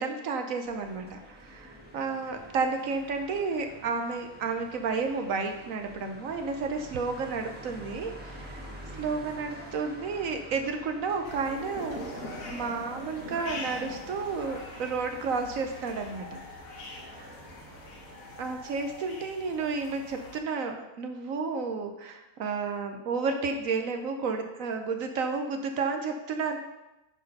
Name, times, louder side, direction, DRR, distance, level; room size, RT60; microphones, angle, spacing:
voice 1, 0.0-8.6 9.0-12.1 12.5-16.4 18.4-26.6, right 4 dB, 70° right, 5 dB, 1.0 m, -31 dB
sound 1, 0.6-18.5, right 1 dB, 5° right, 1.2 m, -48 dB
sound 2, 11.2-20.4, left 1 dB, 65° left, 1.5 m, -43 dB
8.6 x 4.6 x 5.3 m, 0.97 s
omnidirectional pair, 1.6 m